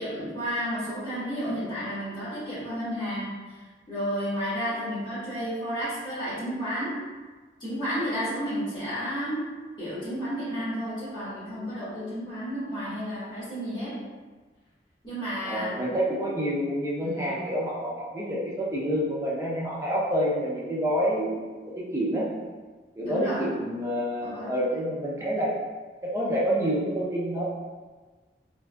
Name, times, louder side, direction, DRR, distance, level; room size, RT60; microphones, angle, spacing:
voice 1, 0.0-7.0 7.6-9.4 9.8-14.0 15.0-15.8 17.0-17.2 23.0-23.5 24.2-24.5, equal, 25° left, -12 dB, 1.4 m, -32 dB
voice 2, 15.4-21.3 21.8-22.3 23.0-25.5 26.0-27.4, equal, 15° right, -6 dB, 0.6 m, -28 dB
3.5 x 2.5 x 2.2 m, 1.4 s
head